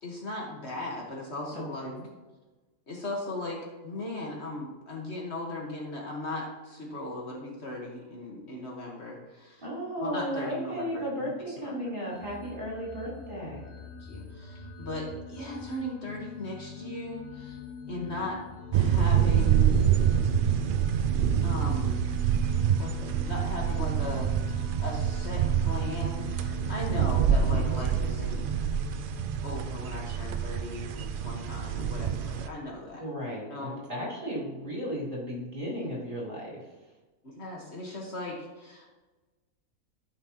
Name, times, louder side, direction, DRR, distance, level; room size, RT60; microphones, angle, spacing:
voice 1, 0.0-2.0 2.9-9.6 10.0-11.7 14.0-17.6 17.9-18.4 18.7-19.8 21.4-22.0 22.8-28.4 29.4-33.0 33.5-33.8 37.2-38.9, left 1 dB, 50° left, -1 dB, 1.7 m, -38 dB
voice 2, 1.5-2.1 9.6-13.6 17.9-18.3 33.0-36.7, equal, 35° right, -6 dB, 3.5 m, -35 dB
sound 1, 12.1-30.6, left 5 dB, 30° left, 2.1 m, -44 dB
sound 2, 18.7-32.5, right 8 dB, 70° right, 0.5 m, -26 dB
13.5 x 6.0 x 3.0 m, 1.2 s
omnidirectional pair, 1.5 m